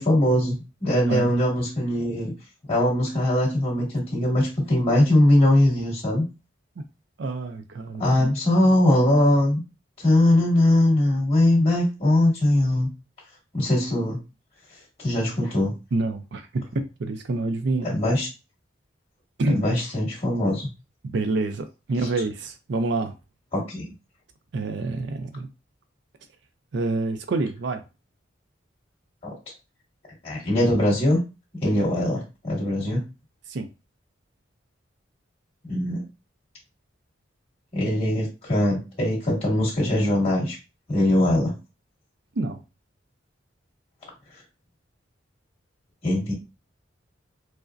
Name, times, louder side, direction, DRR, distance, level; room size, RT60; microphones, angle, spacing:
voice 1, 0.0-2.3 2.7-6.2 8.0-9.6 10.0-12.9 13.5-14.2 15.0-15.7 17.8-18.3 19.4-20.7 23.5-23.9 29.2-29.3 30.2-31.2 31.6-33.0 35.6-36.0 37.7-40.6 40.9-41.5 46.0-46.3, left 1 dB, 30° left, 2.0 m, -21 dB
voice 2, 7.2-8.3 15.9-17.9 19.4-19.6 21.0-23.1 24.5-25.5 26.7-27.8 33.5-33.7 42.4-42.6, right 2 dB, 60° right, 0.4 m, -27 dB
4.8 x 2.1 x 2.5 m
head